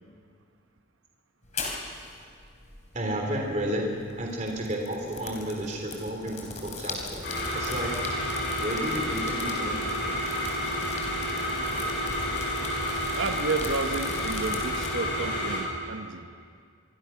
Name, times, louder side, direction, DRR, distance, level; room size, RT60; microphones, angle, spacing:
sound 1, 1.4-14.9, left 3 dB, 35° left, 3.4 m, -40 dB
voice 1, 2.9-3.9 4.2-7.9 8.6-9.8, equal, 35° right, 0 dB, 3.5 m, -32 dB
sound 2, 7.2-15.6, equal, 60° left, 6.4 m, -30 dB
voice 2, 13.2-16.2, right 4 dB, 75° right, 6 dB, 1.1 m, -31 dB
25.0 x 24.0 x 6.0 m, 2.2 s
head